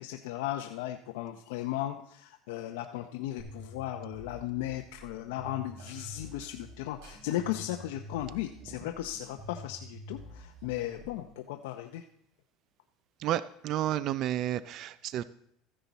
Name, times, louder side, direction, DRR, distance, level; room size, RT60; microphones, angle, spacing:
voice 1, 0.0-12.0, left 13 dB, 80° left, 5 dB, 0.6 m, -36 dB
sound 1, 3.4-11.4, equal, 15° right, 5.3 m, -48 dB
sound 2, 5.7-9.7 10.1-11.3, right 2 dB, 75° right, 6.2 m, -61 dB
voice 2, 13.2-15.2, right 12 dB, 50° right, 16 dB, 0.4 m, -31 dB
14.5 x 10.0 x 4.1 m, 0.71 s
supercardioid pair, 135°, 0 cm